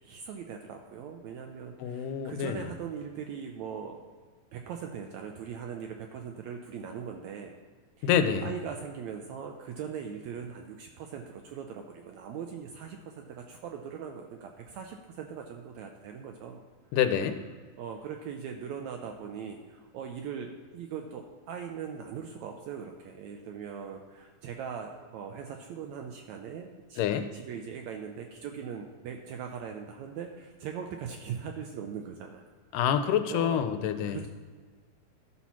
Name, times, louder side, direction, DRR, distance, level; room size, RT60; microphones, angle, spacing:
voice 1, 0.0-4.0 4.5-7.5 8.0-8.1 8.4-16.6 17.8-32.4 32.7-33.7 34.1-34.3, right 7 dB, 80° right, 3 dB, 1.7 m, -40 dB
voice 2, 1.8-2.6 8.0-8.5 16.9-17.4 27.0-27.2 32.7-34.3, left 8 dB, 85° left, 9 dB, 2.2 m, -27 dB
12.5 x 4.3 x 5.9 m, 1.5 s
omnidirectional pair, 3.8 m